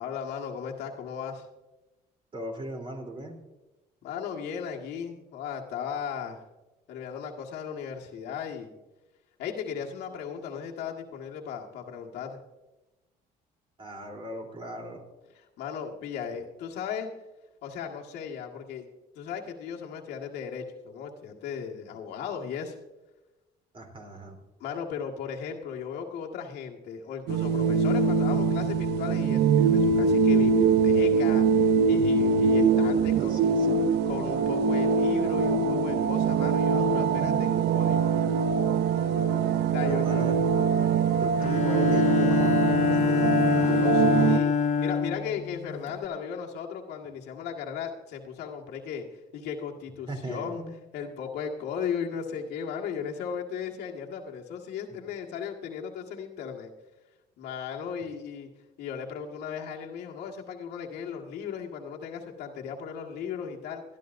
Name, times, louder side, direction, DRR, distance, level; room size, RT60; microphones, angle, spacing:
voice 1, 0.0-1.4 4.0-6.4 6.9-8.7 9.4-12.4 15.6-17.1 17.6-18.9 19.2-22.7 24.6-33.6 34.1-38.1 39.7-40.3 43.5-49.0 49.3-50.6 50.9-56.7 57.4-58.5 58.8-63.8, left 7 dB, 80° left, 0 dB, 1.7 m, -36 dB
voice 2, 2.3-3.5 13.8-15.0 23.7-24.4 32.5-33.8 39.8-40.3 41.1-43.1 50.1-50.7, right 1 dB, 30° right, 2 dB, 3.3 m, -38 dB
sound 1, 27.3-44.4, right 5 dB, 80° right, 0.6 m, -23 dB
Bowed string instrument, 41.4-46.0, left 6 dB, 45° left, 0.7 m, -26 dB
21.0 x 12.0 x 2.6 m, 1.1 s
cardioid pair, 110°, 17 cm